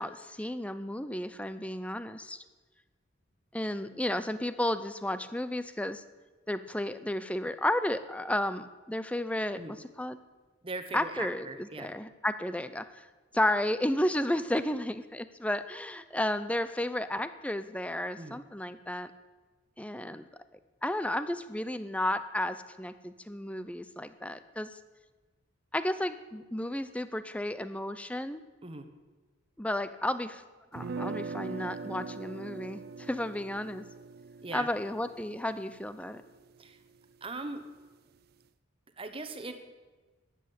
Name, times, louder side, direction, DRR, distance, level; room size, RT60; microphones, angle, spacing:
voice 1, 0.0-2.4 3.5-6.0 6.5-10.2 10.9-13.1 13.3-19.1 19.8-20.3 20.8-24.8 25.7-28.4 29.6-30.4 30.7-33.9 34.5-36.2, left 1 dB, 5° left, 12 dB, 0.5 m, -33 dB
voice 2, 10.6-11.9 18.2-18.4 28.6-28.9 34.4-34.7 36.6-36.8 37.2-37.7 39.0-39.5, right 3 dB, 25° right, 7 dB, 1.1 m, -40 dB
sound 1, 30.7-36.7, right 4 dB, 45° right, 0.4 m, -41 dB
13.0 x 8.9 x 8.4 m, 1.3 s
head